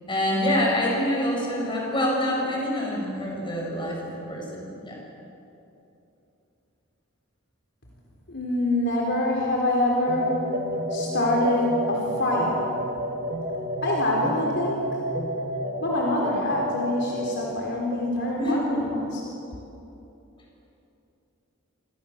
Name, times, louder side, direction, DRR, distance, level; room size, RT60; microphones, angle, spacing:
voice 1, 0.1-5.0 18.4-18.7, left 1 dB, 25° left, -2 dB, 8.0 m, -26 dB
voice 2, 8.3-10.4 10.9-12.6 13.8-15.0 15.8-19.2, left 1 dB, 55° left, -2 dB, 4.1 m, -25 dB
sound 1, 10.1-17.5, equal, 35° right, 2.2 m, -30 dB
27.5 x 27.0 x 7.4 m, 2.9 s
head